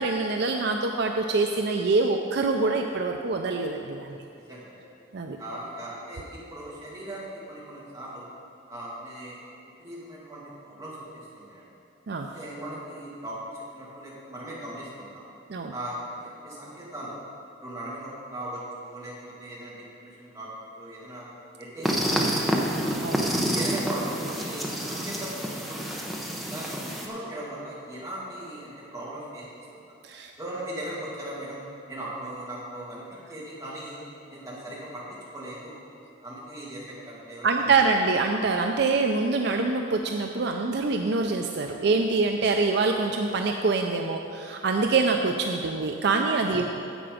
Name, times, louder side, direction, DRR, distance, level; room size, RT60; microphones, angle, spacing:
voice 1, 0.0-4.1 5.1-5.4 12.1-12.3 15.5-15.7 23.0-23.2 30.0-30.3 37.4-46.7, right 3 dB, 55° right, 3 dB, 0.4 m, -25 dB
voice 2, 5.4-8.3 8.7-9.4 9.8-11.7 12.3-15.2 15.7-17.2 17.6-19.1 19.4-20.5 20.8-21.3 21.6-22.8 23.1-26.0 26.5-29.7 30.4-31.6 31.9-34.0 34.3-35.8 36.2-37.8 46.5-46.6, right 1 dB, 15° right, -7 dB, 2.2 m, -39 dB
sound 1, 21.8-27.1, equal, ahead, 0.8 m, -28 dB
9.9 x 7.9 x 5.0 m, 2.7 s
head